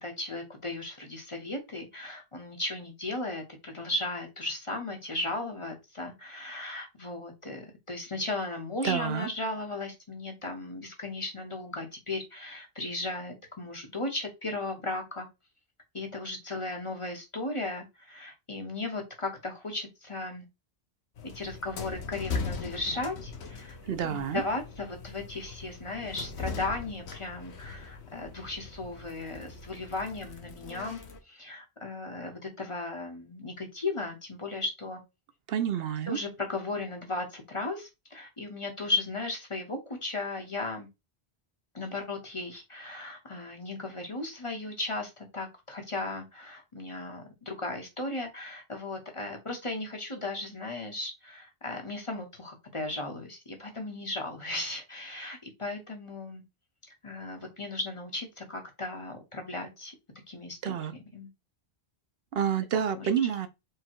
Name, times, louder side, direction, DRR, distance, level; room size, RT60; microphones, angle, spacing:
voice 1, 0.0-15.3 15.9-20.4 21.3-23.8 24.0-31.0 31.3-35.0 36.1-40.9 41.7-56.4 57.0-59.9 60.3-60.8 61.1-61.3 62.9-63.1, left 2 dB, 30° left, 1.0 m, -36 dB
voice 2, 8.8-9.3 23.9-24.4 35.5-36.2 60.6-60.9 62.3-63.5, right 8 dB, 70° right, 0.8 m, -29 dB
sound 1, 21.2-31.2, left 4 dB, 85° left, 1.1 m, -40 dB
4.8 x 2.3 x 4.5 m
omnidirectional pair, 1.1 m